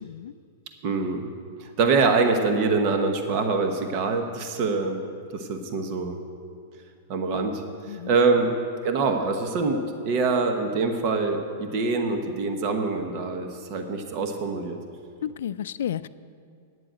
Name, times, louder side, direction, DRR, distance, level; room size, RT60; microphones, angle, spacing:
voice 1, 0.0-0.3 7.9-8.1 15.2-16.1, left 10 dB, 80° left, 15 dB, 0.4 m, -32 dB
voice 2, 0.8-1.3 1.6-5.0 5.3-6.2 7.1-8.5 8.8-14.8, right 4 dB, 40° right, 5 dB, 1.1 m, -25 dB
9.5 x 7.7 x 9.0 m, 2.4 s
supercardioid pair, 160°, 0 cm